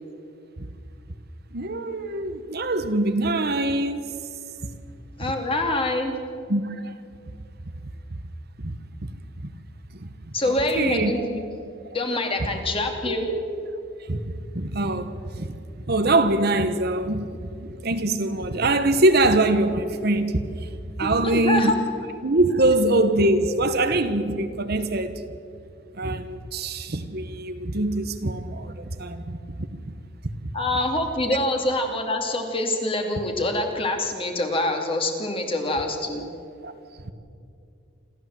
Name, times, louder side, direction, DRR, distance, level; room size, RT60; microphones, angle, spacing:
voice 1, 1.5-4.1 6.5-7.0 8.1-8.2 8.6-8.7 9.0-9.1 9.4-9.5 9.9-11.1 13.0-13.7 14.0-15.5 15.9-20.7 21.0-21.7 22.2-25.2 25.9-29.6 29.9-30.0 30.4-30.5 36.6-36.7 37.0-37.1, right 2 dB, 55° right, 1.2 m, -24 dB
voice 2, 5.2-6.1 10.3-11.5 11.9-13.3 21.0-21.7 30.5-36.3, left 1 dB, 30° left, 2.6 m, -25 dB
27.5 x 13.5 x 7.8 m
head